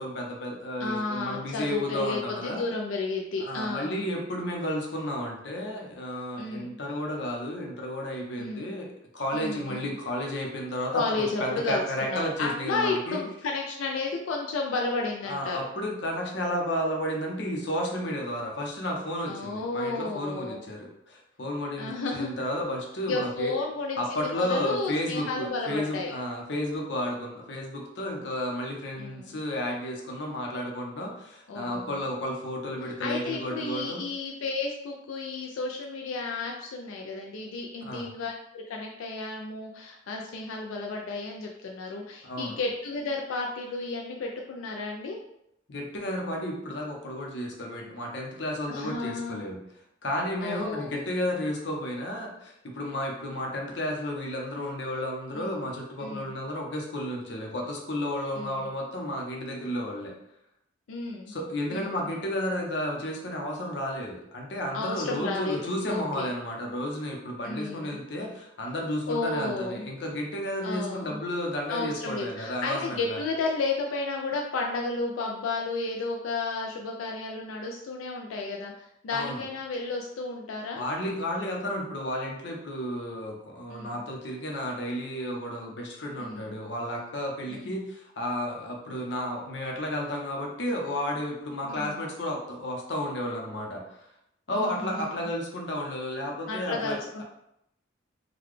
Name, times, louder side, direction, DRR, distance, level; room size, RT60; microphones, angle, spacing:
voice 1, 0.0-2.7 3.4-13.2 15.2-23.5 24.0-34.0 37.8-38.1 42.2-42.6 45.7-49.6 50.0-60.1 61.3-73.2 79.1-79.4 80.8-94.0 94.5-97.2, left 1 dB, 60° left, 0 dB, 0.7 m, -32 dB
voice 2, 0.8-4.1 6.4-6.8 8.4-8.7 9.3-9.8 10.9-15.6 19.3-20.6 21.8-22.4 23.1-26.1 29.0-29.4 31.5-32.0 32.9-45.2 48.7-49.5 50.4-51.0 55.3-55.6 56.0-56.3 58.3-58.7 60.9-61.3 61.7-61.9 64.7-65.6 65.9-66.3 67.4-68.0 69.1-69.9 70.6-71.2 71.7-80.8 83.7-84.0 86.2-86.5 87.5-87.7 91.6-92.0 94.5-95.1 96.5-97.2, left 3 dB, 90° left, 0 dB, 0.4 m, -32 dB
3.8 x 2.2 x 3.1 m, 0.80 s
head